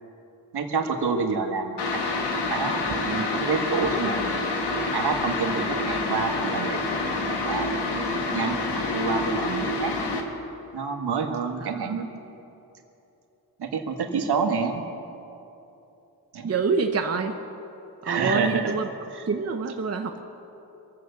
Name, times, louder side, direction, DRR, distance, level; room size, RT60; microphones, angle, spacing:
voice 1, 0.5-2.1 2.5-4.4 4.9-8.0 8.3-9.9 10.7-12.2 13.6-14.8 16.3-16.5 18.0-18.7 19.1-19.2, right 5 dB, 75° right, 4 dB, 1.6 m, -28 dB
sound 1, 1.8-10.2, left 3 dB, 85° left, 1.7 m, -27 dB
voice 2, 11.6-11.9 16.4-17.3 18.0-18.9 19.3-20.2, right 5 dB, 40° right, 4 dB, 0.9 m, -26 dB
24.0 x 8.2 x 6.7 m, 2.9 s
cardioid pair, 95°, 40 cm